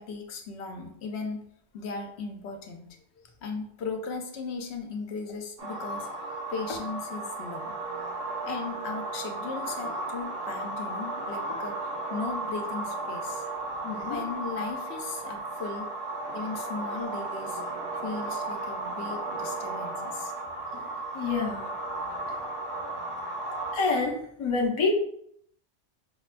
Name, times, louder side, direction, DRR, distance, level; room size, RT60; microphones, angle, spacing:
voice 1, 0.0-1.5 1.7-3.0 3.2-6.1 6.5-7.8 8.4-13.5 14.0-15.9 16.3-17.6 18.0-20.3, left 4 dB, 75° left, 4 dB, 0.8 m, -37 dB
sound 1, 5.6-23.7, right 2 dB, 65° right, 1.0 m, -34 dB
voice 2, 13.8-14.2 20.8-20.9 21.1-21.6 22.3-22.4 23.7-24.9, left 4 dB, 40° left, 0 dB, 0.5 m, -27 dB
5.1 x 2.2 x 2.4 m, 0.68 s
omnidirectional pair, 1.1 m